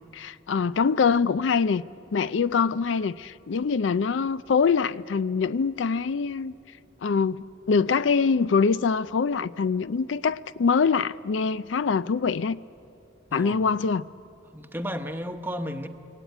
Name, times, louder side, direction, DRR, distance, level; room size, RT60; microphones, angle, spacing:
voice 1, 0.1-1.8 2.1-6.5 7.0-12.6 13.3-14.1, left 5 dB, 80° left, 0.4 m, -24 dB
voice 2, 13.3-13.6 14.5-15.9, equal, 10° right, 0.9 m, -33 dB
23.0 x 17.5 x 9.2 m
head